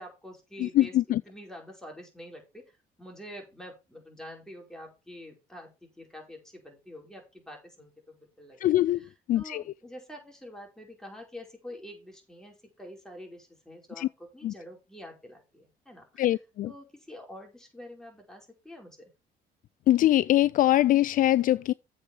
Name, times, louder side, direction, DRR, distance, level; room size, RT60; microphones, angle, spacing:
voice 1, 0.0-1.0 1.2-16.2 16.6-19.1, left 1 dB, 5° left, 4.7 m, -47 dB
voice 2, 0.6-1.2 8.6-9.0 9.3-9.6 14.0-14.1 14.4-14.5 16.2-16.7 19.9-21.7, left 14 dB, 55° left, 0.4 m, -23 dB
7.9 x 5.0 x 7.1 m
cardioid pair, 110°, 17 cm